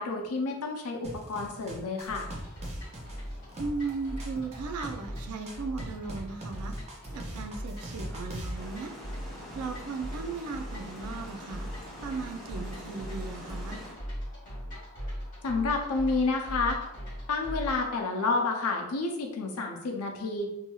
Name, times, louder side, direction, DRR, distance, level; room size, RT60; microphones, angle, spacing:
voice 1, 0.0-2.3 15.4-16.8 17.3-20.5, left 3 dB, 80° left, 2 dB, 0.5 m, -29 dB
sound 1, 1.0-8.6, right 1 dB, 30° right, 0.5 m, -41 dB
sound 2, 2.1-17.9, equal, 40° left, 1.3 m, -40 dB
voice 2, 3.6-6.8 7.1-8.9 9.5-11.7 12.0-13.8, right 4 dB, 80° right, 5 dB, 0.4 m, -37 dB
Water, 8.5-13.9, equal, 5° left, 1.2 m, -45 dB
2.7 x 2.3 x 2.9 m, 0.87 s
head